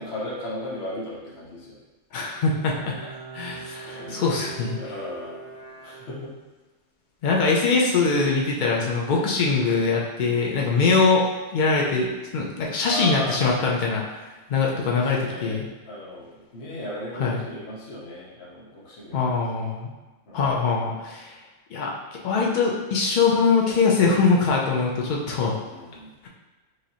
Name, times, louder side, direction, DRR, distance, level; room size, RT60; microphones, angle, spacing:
voice 1, 0.0-1.8 3.8-4.3 4.8-5.4 5.8-6.3 12.9-13.7 14.7-15.6 15.9-19.2 20.3-20.6 25.5-26.1, left 1 dB, 50° left, -5 dB, 1.1 m, -36 dB
voice 2, 2.1-3.1 3.3-4.8 7.2-11.2 11.5-14.2 14.5-15.7 17.2-17.4 19.1-19.9 20.3-21.3 21.7-21.9 22.2-25.5, left 4 dB, 70° left, -2 dB, 0.4 m, -22 dB
Bowed string instrument, 2.2-6.6, right 4 dB, 40° right, 0.6 m, -42 dB
4.8 x 2.6 x 2.8 m, 1.2 s
omnidirectional pair, 1.5 m